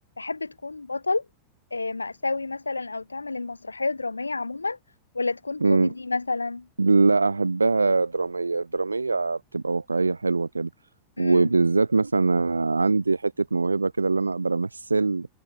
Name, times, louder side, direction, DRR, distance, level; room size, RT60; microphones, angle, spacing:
voice 1, 0.2-1.3 1.7-4.8 5.1-6.7 11.2-11.5, left 3 dB, 80° left, 2.5 m, -29 dB
voice 2, 5.6-5.9 6.8-10.7 11.2-15.3, right 3 dB, 80° right, 0.7 m, -23 dB
figure-of-eight pair, 90°, 0 cm